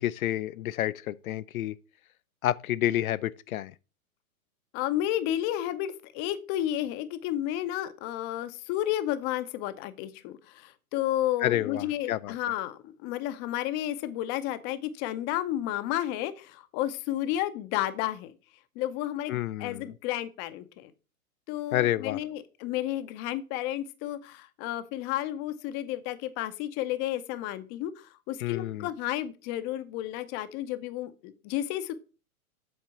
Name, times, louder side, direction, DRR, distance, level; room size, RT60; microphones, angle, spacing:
voice 1, 0.0-1.8 2.4-3.7 11.4-12.4 19.3-19.9 21.7-22.2 28.4-28.9, left 13 dB, 75° left, 0.5 m, -29 dB
voice 2, 4.7-18.3 18.8-20.9 21.5-31.9, left 13 dB, 25° left, 0.5 m, -32 dB
7.7 x 3.7 x 5.5 m
hypercardioid pair, 125°, 44 cm